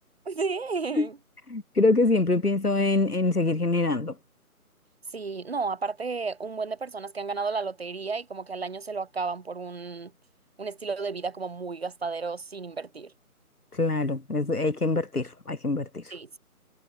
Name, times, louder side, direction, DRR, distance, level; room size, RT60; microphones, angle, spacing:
voice 1, 0.3-1.2 5.1-10.1 10.6-13.1 16.1-16.4, right 4 dB, 40° right, 7.0 m, -32 dB
voice 2, 1.5-4.1 13.8-16.0, left 2 dB, 80° left, 2.2 m, -24 dB
figure-of-eight pair, 155°, 45 cm